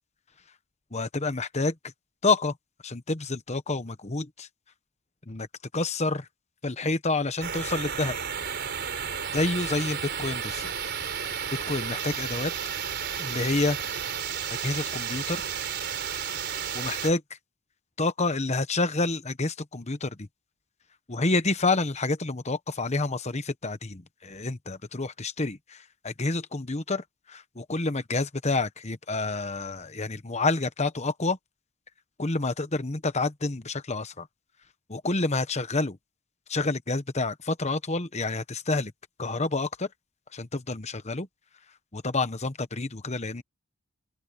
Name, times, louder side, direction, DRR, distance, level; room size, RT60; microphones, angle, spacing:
voice 1, 0.9-1.7 2.2-2.6 2.8-4.5 5.3-5.5 5.7-6.3 6.6-8.1 9.3-10.7 11.1-11.3 11.7-12.5 13.2-13.8 14.6-15.4 16.7-17.2 18.0-20.3 21.1-31.4 32.2-34.3 34.9-36.0 36.5-38.9 39.2-39.9 40.3-41.3 41.9-43.4, left 3 dB, 30° left, 1.1 m, -28 dB
sound 1, 7.4-17.1, right 7 dB, 50° right, 4.1 m, -32 dB
open air
head